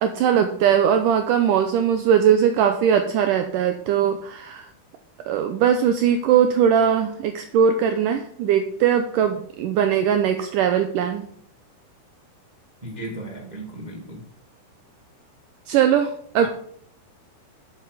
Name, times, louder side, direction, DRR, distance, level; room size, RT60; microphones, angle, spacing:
voice 1, 0.0-4.7 5.3-11.3 15.7-16.5, right 8 dB, 80° right, 7 dB, 2.0 m, -20 dB
voice 2, 12.8-14.2 16.4-16.5, right 1 dB, 25° right, -1 dB, 0.9 m, -35 dB
11.0 x 7.8 x 4.9 m, 0.63 s
omnidirectional pair, 4.5 m